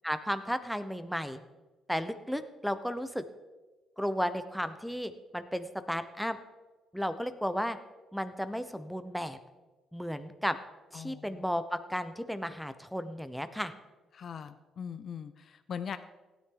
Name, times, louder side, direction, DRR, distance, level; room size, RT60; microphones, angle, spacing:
voice 1, 0.0-1.4 1.9-3.2 4.0-6.4 6.9-7.8 8.1-9.4 9.9-10.6 10.9-13.7, equal, ahead, 9 dB, 0.8 m, -34 dB
voice 2, 10.9-11.4 14.1-16.0, left 7 dB, 55° left, 11 dB, 0.6 m, -41 dB
16.0 x 9.8 x 3.8 m, 1.2 s
cardioid pair, 90°, 0 cm